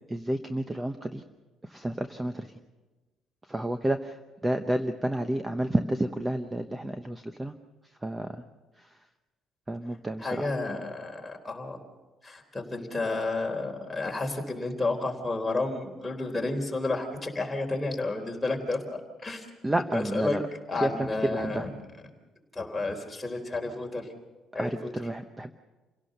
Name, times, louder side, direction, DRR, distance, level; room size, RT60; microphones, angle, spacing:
voice 1, 0.1-1.2 1.6-2.5 3.5-7.5 8.0-8.4 8.8-9.0 9.7-10.5 19.6-20.4 20.8-21.7 24.6-25.5, right 1 dB, 10° right, 8 dB, 0.9 m, -30 dB
voice 2, 10.2-11.8 12.2-18.8 19.2-19.5 19.9-20.4 20.7-21.7 22.5-24.1 24.5-24.9, left 2 dB, 10° left, 1 dB, 3.8 m, -31 dB
28.5 x 17.5 x 6.7 m, 1.2 s
cardioid pair, 140°, 0 cm